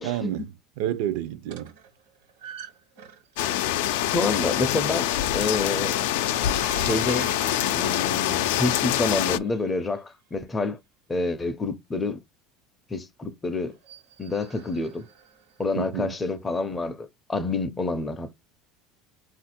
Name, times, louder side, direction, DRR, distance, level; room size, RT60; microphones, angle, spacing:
voice 1, 0.0-1.7 15.8-16.2, right 11 dB, 70° right, 0.5 m, -30 dB
sound 1, 1.5-3.8 6.0-10.0 13.6-15.9, right 10 dB, 90° right, 1.3 m, -45 dB
sound 2, 3.4-9.4, left 12 dB, 85° left, 0.4 m, -25 dB
voice 2, 3.9-6.0 6.8-7.3 7.7-10.8 11.1-12.2 12.9-13.8 14.2-15.1 15.6-18.4, left 3 dB, 15° left, 0.5 m, -28 dB
4.3 x 2.4 x 4.2 m
cardioid pair, 160°, 0 cm